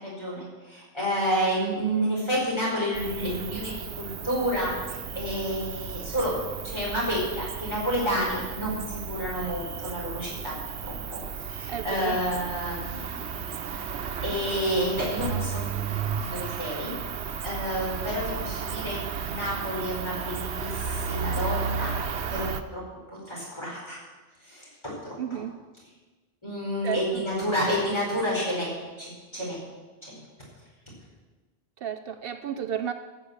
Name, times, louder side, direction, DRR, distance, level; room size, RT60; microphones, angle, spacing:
voice 1, 0.0-6.4 6.6-10.5 10.8-13.3 13.8-13.9 14.2-16.9 17.2-19.0 19.2-21.9 22.3-22.4 22.7-22.8 23.1-24.0 24.4-25.4 26.4-29.6 30.0-30.1, equal, 25° left, -5 dB, 5.0 m, -30 dB
Cricket, 2.9-22.6, right 6 dB, 85° right, 1.0 m, -34 dB
voice 2, 11.7-12.2 25.2-25.6 26.8-27.2 31.8-32.9, right 9 dB, 65° right, 9 dB, 0.8 m, -32 dB
14.0 x 7.4 x 7.2 m, 1.2 s
omnidirectional pair, 1.1 m